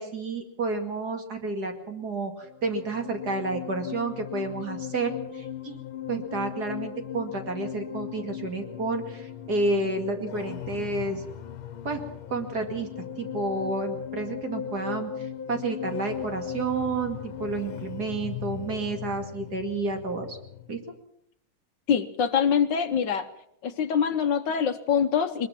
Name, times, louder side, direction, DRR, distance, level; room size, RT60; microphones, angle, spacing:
voice 1, 0.0-5.8 6.1-11.2 11.8-12.0 12.3-12.9 13.2-20.4 20.7-20.8, right 3 dB, 50° right, 5 dB, 2.8 m, -30 dB
sound 1, 2.4-20.9, left 9 dB, 80° left, 1.9 m, -38 dB
voice 2, 21.9-23.3 23.6-25.5, left 7 dB, 65° left, 9 dB, 1.5 m, -24 dB
21.5 x 20.5 x 6.0 m, 0.73 s
omnidirectional pair, 2.3 m